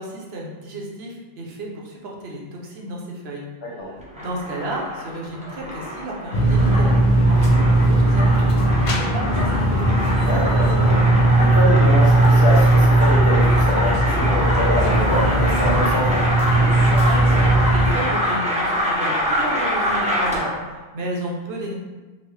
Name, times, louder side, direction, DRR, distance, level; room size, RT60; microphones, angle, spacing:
voice 1, 0.0-3.4 3.7-9.8 17.0-21.7, right 1 dB, 75° right, -2 dB, 0.9 m, -32 dB
sound 1, 4.0-20.6, equal, 10° right, 0.5 m, -25 dB
sound 2, 6.3-17.9, right 2 dB, 50° left, 0.4 m, -17 dB
voice 2, 10.2-16.2, left 1 dB, 80° left, -4 dB, 1.2 m, -25 dB
3.8 x 2.1 x 3.2 m, 1.2 s
omnidirectional pair, 1.0 m